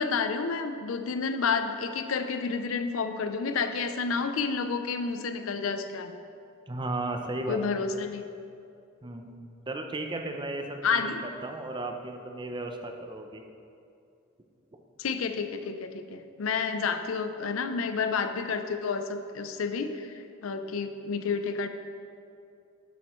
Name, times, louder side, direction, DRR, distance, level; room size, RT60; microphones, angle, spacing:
voice 1, 0.0-6.2 7.5-8.3 10.8-11.2 15.0-21.7, left 5 dB, 80° left, 8 dB, 0.5 m, -30 dB
voice 2, 6.7-7.6 9.0-11.1 11.4-13.4, right 2 dB, 25° right, 4 dB, 0.6 m, -35 dB
11.0 x 7.5 x 3.1 m, 2.5 s
head